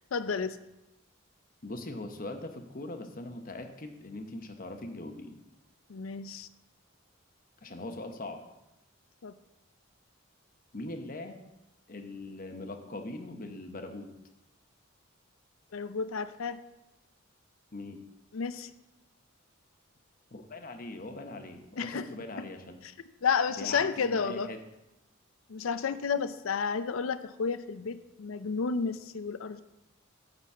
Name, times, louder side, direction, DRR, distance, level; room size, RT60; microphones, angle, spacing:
voice 1, 0.1-0.6 5.9-6.5 9.2-9.3 15.7-16.6 18.3-18.7 21.8-22.1 23.2-24.5 25.5-29.6, left 5 dB, 80° left, 12 dB, 0.5 m, -31 dB
voice 2, 1.6-5.4 7.6-8.4 10.7-11.4 11.9-14.1 17.7-18.0 20.3-22.8 23.6-24.6, left 2 dB, 45° left, 6 dB, 0.9 m, -41 dB
9.7 x 4.1 x 7.2 m, 0.92 s
head